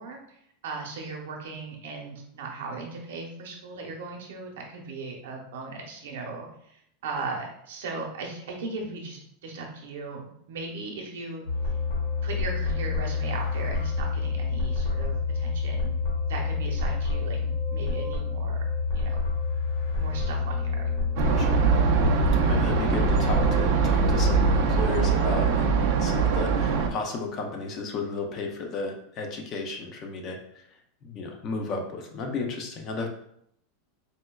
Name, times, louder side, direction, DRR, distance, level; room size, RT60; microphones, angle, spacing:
voice 1, 0.0-10.2 10.5-11.5 12.2-15.9 16.3-18.7 18.9-19.2 19.9-20.9, right 3 dB, 80° right, 1 dB, 0.7 m, -37 dB
sound 1, 11.5-24.7, left 4 dB, 65° left, 1.1 m, -28 dB
sound 2, 21.2-26.9, right 6 dB, 50° right, 0.4 m, -23 dB
voice 2, 22.4-30.6 31.0-33.1, left 3 dB, 25° left, 3 dB, 0.4 m, -33 dB
4.2 x 2.2 x 2.2 m, 0.71 s
supercardioid pair, 180°, 0 cm